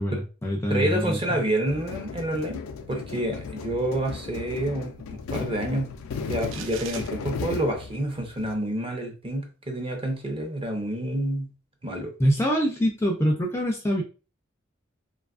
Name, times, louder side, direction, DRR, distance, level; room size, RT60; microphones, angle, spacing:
voice 1, 0.0-1.2 12.2-14.0, equal, 15° left, -1 dB, 0.4 m, -24 dB
voice 2, 0.7-2.6 2.9-5.0 5.3-5.9 6.3-11.5 11.8-12.1, right 1 dB, 25° right, 2 dB, 0.6 m, -28 dB
sound 1, 1.7-8.5, left 5 dB, 90° left, 0.4 m, -36 dB
sound 2, 6.4-7.1, right 7 dB, 65° right, 0.4 m, -39 dB
2.7 x 2.3 x 2.3 m, 0.32 s
head